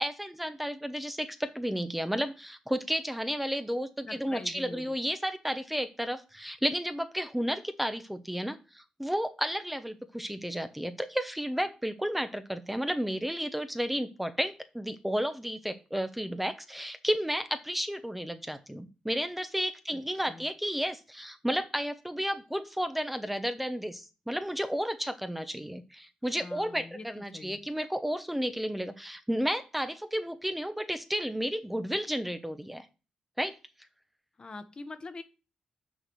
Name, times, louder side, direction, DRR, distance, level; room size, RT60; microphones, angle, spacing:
voice 1, 0.0-32.9 33.4-33.5, equal, 5° right, 9 dB, 0.8 m, -32 dB
voice 2, 4.0-5.0 19.9-20.0 20.3-20.5 26.4-27.7 34.4-35.2, left 3 dB, 40° left, 9 dB, 1.1 m, -44 dB
6.4 x 4.8 x 6.2 m, 0.32 s
cardioid pair, 65°, 2 cm